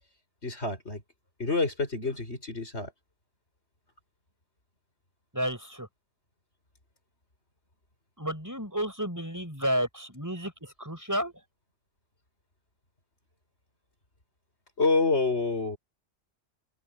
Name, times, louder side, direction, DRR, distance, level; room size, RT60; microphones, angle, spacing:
voice 1, 0.4-1.0 1.4-2.9 14.8-15.8, left 3 dB, 75° left, 5.5 m, -27 dB
voice 2, 5.3-5.9 8.2-11.3, equal, 15° right, 6.6 m, -31 dB
open air
omnidirectional pair, 1.1 m